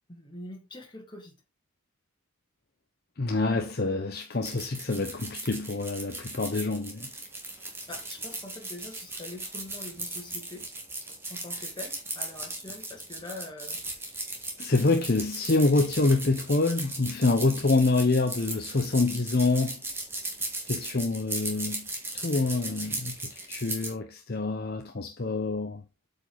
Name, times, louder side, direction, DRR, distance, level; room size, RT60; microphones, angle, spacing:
voice 1, 0.1-1.4 7.6-10.7 11.3-13.8, left 2 dB, 20° left, 2.3 m, -44 dB
voice 2, 3.2-7.1 14.6-19.8 20.7-21.9 22.1-25.8, left 3 dB, 45° left, 0.8 m, -26 dB
sound 1, 4.4-23.9, right 2 dB, 10° right, 1.8 m, -37 dB
8.3 x 5.2 x 3.9 m
head